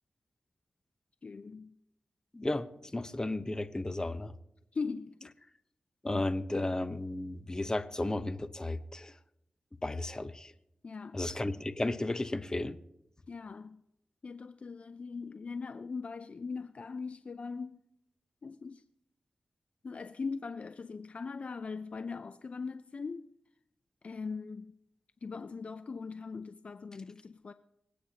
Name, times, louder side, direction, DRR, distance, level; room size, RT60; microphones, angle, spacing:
voice 1, 1.2-1.8 4.7-5.3 10.8-11.2 13.3-13.8 14.2-17.8 18.4-18.8 19.8-23.3 24.0-24.7 25.2-27.5, left 4 dB, 55° left, 0.5 m, -40 dB
voice 2, 2.3-4.3 6.0-9.1 9.8-10.5 11.1-12.8, left 2 dB, 25° left, 0.9 m, -34 dB
25.0 x 8.6 x 2.9 m
cardioid pair, 55°, 3 cm